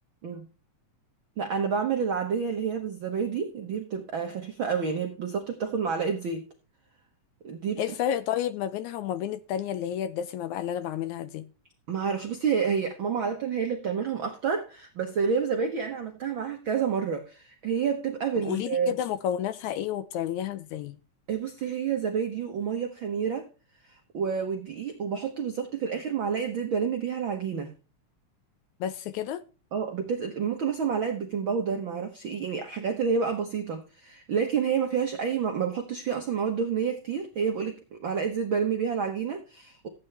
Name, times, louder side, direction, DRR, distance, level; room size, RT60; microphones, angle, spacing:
voice 1, 1.4-6.4 7.4-7.8 11.9-18.9 21.3-23.5 23.8-27.7 29.7-39.9, right 6 dB, 70° right, 1.2 m, -29 dB
voice 2, 7.8-11.5 18.4-21.0 28.8-29.4, left 10 dB, 75° left, 1.8 m, -31 dB
14.0 x 8.6 x 3.3 m
omnidirectional pair, 3.7 m